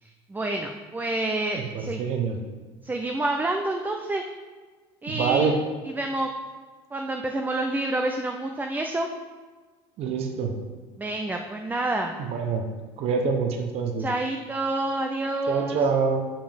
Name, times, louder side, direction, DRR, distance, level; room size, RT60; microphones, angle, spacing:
voice 1, 0.0-2.0 2.8-4.2 5.0-5.6 5.9-6.3 6.9-9.1 11.0-12.1 14.0-15.8, right 2 dB, 15° right, 3 dB, 0.5 m, -28 dB
voice 2, 1.5-2.4 5.1-5.6 10.0-10.5 12.2-12.6 13.0-14.1 15.5-16.2, right 5 dB, 55° right, 4 dB, 0.9 m, -25 dB
5.7 x 5.1 x 5.2 m, 1.4 s
supercardioid pair, 85°, 12 cm